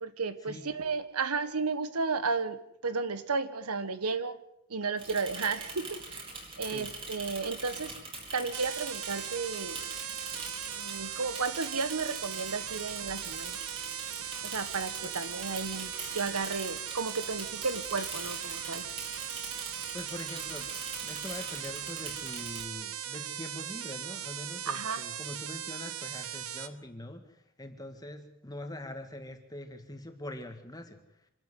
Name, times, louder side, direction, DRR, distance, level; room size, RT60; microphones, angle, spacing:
voice 1, 0.0-4.4 4.7-7.9 8.3-9.8 10.7-13.6 14.4-18.8 24.7-25.0, right 4 dB, 90° right, 12 dB, 1.4 m, -33 dB
Bicycle / Mechanisms, 5.0-22.6, right 3 dB, 25° right, 4.8 m, -43 dB
sound 1, 8.5-26.7, right 10 dB, 75° right, 1.2 m, -39 dB
voice 2, 19.9-20.7 21.0-31.0, left 1 dB, 15° left, 6 dB, 2.0 m, -43 dB
26.0 x 13.0 x 8.2 m, 0.78 s
head